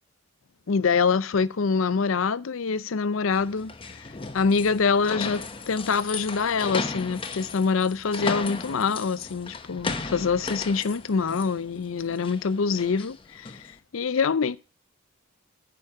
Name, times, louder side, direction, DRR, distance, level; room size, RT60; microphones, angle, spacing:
voice 1, 0.7-3.7 4.0-13.6 13.9-14.6, left 5 dB, 80° left, 0.5 m, -25 dB
sound 1, 3.3-13.7, left 3 dB, 25° left, 0.8 m, -36 dB
9.1 x 5.2 x 7.1 m
head